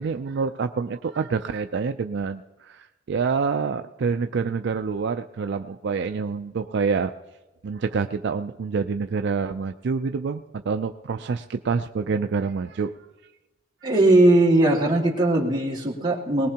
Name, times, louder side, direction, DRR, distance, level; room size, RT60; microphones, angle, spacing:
voice 1, 0.0-7.1 7.6-12.9 13.8-13.9, right 5 dB, 65° right, 8 dB, 0.4 m, -27 dB
voice 2, 13.8-16.5, right 1 dB, 25° right, -3 dB, 2.3 m, -19 dB
21.0 x 19.0 x 2.9 m, 1.1 s
head